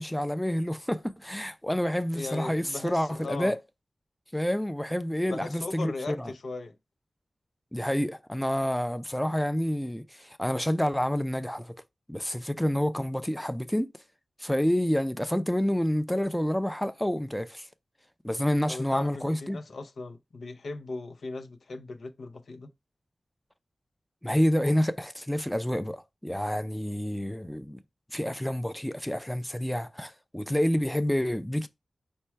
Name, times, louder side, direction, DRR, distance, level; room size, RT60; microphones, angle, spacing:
voice 1, 0.0-3.6 4.3-6.3 7.7-11.8 12.1-13.9 14.4-17.7 18.2-19.6 24.2-27.8 28.1-31.7, equal, 5° left, 0.4 m, -28 dB
voice 2, 2.1-3.5 5.3-6.7 18.7-22.7, left 3 dB, 90° left, 0.6 m, -38 dB
4.4 x 2.2 x 4.4 m
wide cardioid pair, 60°, 0 cm